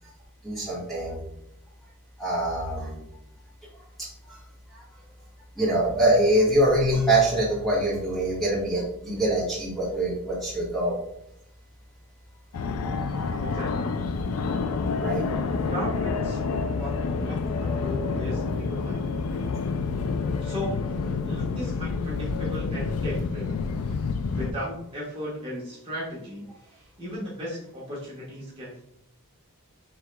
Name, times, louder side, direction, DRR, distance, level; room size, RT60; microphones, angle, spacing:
voice 1, 0.4-1.2 2.2-3.0 4.0-4.4 4.7-4.8 5.5-11.0 15.0-15.2, right 1 dB, ahead, -7 dB, 1.5 m, -24 dB
Fixed-wing aircraft airplane, 12.5-24.5, left 4 dB, 70° left, 0.4 m, -28 dB
voice 2, 13.4-13.9 15.7-19.2 20.4-23.6 24.3-28.8, equal, 25° right, -7 dB, 1.3 m, -36 dB
4.6 x 3.6 x 2.2 m, 0.78 s
head